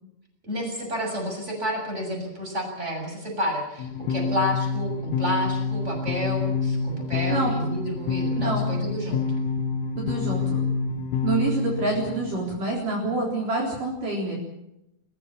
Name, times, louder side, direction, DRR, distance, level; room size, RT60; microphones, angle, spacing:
voice 1, 0.4-9.2, equal, 15° right, 2 dB, 7.2 m, -30 dB
sound 1, 3.8-12.4, left 4 dB, 90° left, 4.1 m, -27 dB
voice 2, 8.4-8.7 10.0-10.6 11.2-14.4, right 3 dB, 45° right, -1 dB, 5.1 m, -27 dB
26.0 x 15.0 x 8.6 m, 0.86 s
omnidirectional pair, 5.4 m